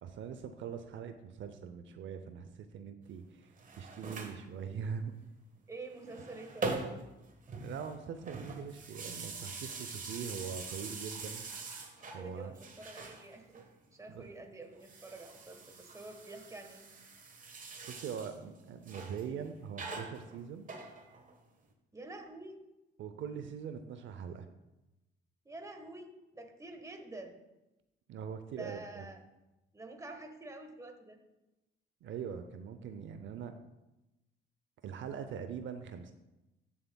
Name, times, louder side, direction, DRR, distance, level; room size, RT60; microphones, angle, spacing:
voice 1, 0.0-5.1 7.6-11.4 12.1-12.5 14.1-14.3 17.9-20.7 23.0-24.5 28.1-29.1 32.0-33.6 34.8-36.1, right 7 dB, 75° right, 9 dB, 0.6 m, -42 dB
sound 1, 3.4-4.4 5.8-7.2 7.4-12.2 12.6-13.7 14.7-18.4 18.9-19.3 19.8-21.4, right 3 dB, 40° right, 1.3 m, -43 dB
voice 2, 5.7-6.9 12.2-13.6 13.9-16.9 21.9-22.6 25.4-27.3 28.6-29.2 29.7-31.2, right 2 dB, 15° right, 4 dB, 1.3 m, -48 dB
13.0 x 7.2 x 2.3 m, 0.97 s
cardioid pair, 90°, 20 cm